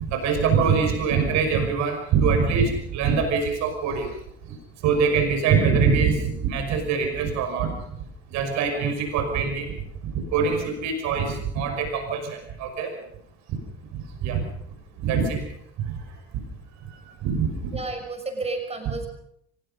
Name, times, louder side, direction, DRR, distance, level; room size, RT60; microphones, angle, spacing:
voice 1, 0.1-4.1 4.8-7.7 8.3-9.7 10.1-12.9 13.5-13.6 13.9-14.4 15.0-15.4 15.8-16.0 16.3-16.4 16.9-17.5, right 5 dB, 55° right, 5 dB, 5.7 m, -23 dB
voice 2, 17.7-19.1, right 3 dB, 20° right, 5 dB, 6.1 m, -31 dB
24.0 x 20.5 x 5.5 m, 0.74 s
figure-of-eight pair, 55°, 32 cm